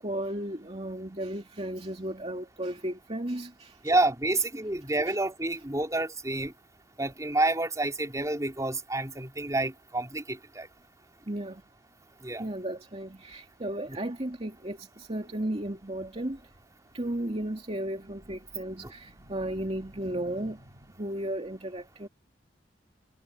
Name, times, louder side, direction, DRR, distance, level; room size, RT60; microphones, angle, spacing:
voice 1, 0.0-4.0 4.3-4.5 4.8-5.2 5.6-5.7 11.3-11.6 12.4-16.4 16.9-22.1, right 1 dB, 35° right, 2.5 m, -35 dB
voice 2, 3.8-6.5 7.0-10.7 12.2-12.4, right 2 dB, 20° right, 3.8 m, -28 dB
head